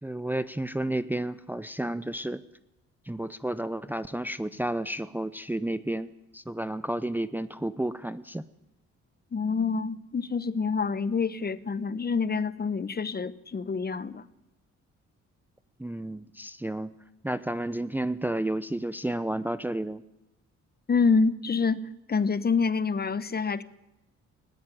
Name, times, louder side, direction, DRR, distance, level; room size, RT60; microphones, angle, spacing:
voice 1, 0.0-2.4 3.1-6.1 6.3-8.4 15.8-16.9 17.2-20.0, right 1 dB, 5° right, 13 dB, 0.7 m, -31 dB
voice 2, 9.3-14.2 20.9-21.8 22.1-23.6, left 5 dB, 30° left, 16 dB, 1.1 m, -27 dB
20.0 x 16.0 x 9.2 m, 0.94 s
cardioid pair, 90°, 30 cm